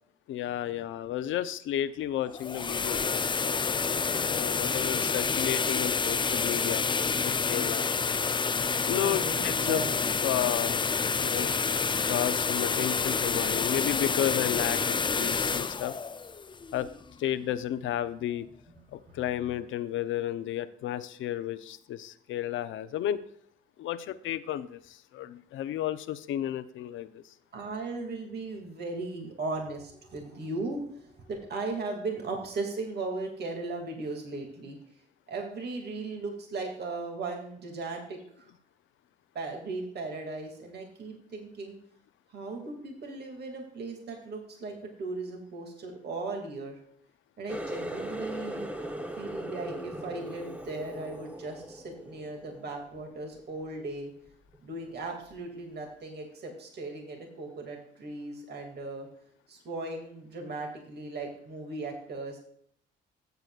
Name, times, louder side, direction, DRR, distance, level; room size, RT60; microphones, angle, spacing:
voice 1, 0.3-3.5 4.2-6.9 7.2-7.9 8.8-9.8 10.2-10.8 11.2-11.5 12.0-15.9 16.7-16.9 17.2-18.5 18.9-23.2 23.8-27.2, left 11 dB, 80° left, 13 dB, 0.7 m, -32 dB
sound 1, 2.2-17.1, left 5 dB, 25° left, 0.5 m, -28 dB
voice 2, 8.9-9.9 11.7-12.1 19.1-19.5 27.5-34.8 35.3-38.5 39.3-41.8 42.3-46.8 47.4-48.7 49.1-54.1 54.6-59.1 59.5-62.4, right 3 dB, 55° right, 2 dB, 2.4 m, -37 dB
Water tap faucet, 47.5-53.0 53.4-53.8 54.3-54.6 55.3-55.4, right 1 dB, 5° right, 1.1 m, -39 dB
13.5 x 8.3 x 2.4 m, 0.66 s
cardioid pair, 90°, 20 cm